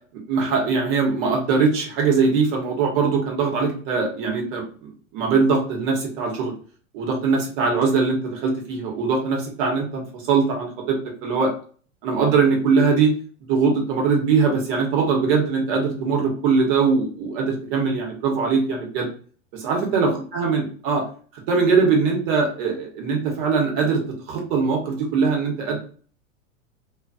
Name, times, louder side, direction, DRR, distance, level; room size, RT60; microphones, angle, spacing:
voice 1, 0.3-4.6 5.1-6.5 6.9-11.5 12.0-13.1 13.5-19.1 19.5-21.0 21.5-24.0 24.3-25.8, right 5 dB, 45° right, 0 dB, 1.2 m, -21 dB
2.7 x 2.5 x 2.5 m, 0.42 s
figure-of-eight pair, 100°, 40 cm